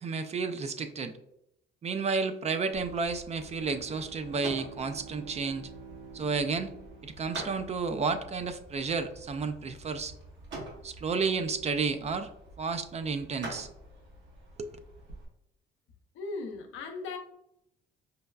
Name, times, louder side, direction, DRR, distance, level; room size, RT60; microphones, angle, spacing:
voice 1, 0.0-1.1 1.8-5.7 6.1-6.7 7.0-10.1 10.8-12.3 12.6-13.7 14.6-14.7, right 4 dB, 35° right, 9 dB, 0.3 m, -31 dB
sound 1, 2.7-15.2, right 1 dB, 70° right, 1.3 m, -47 dB
Bowed string instrument, 3.3-7.9, right 6 dB, 50° right, 0.9 m, -50 dB
voice 2, 16.1-17.2, left 3 dB, 80° left, 3 dB, 0.6 m, -37 dB
5.2 x 2.2 x 2.2 m, 0.78 s
cardioid pair, 90°, 20 cm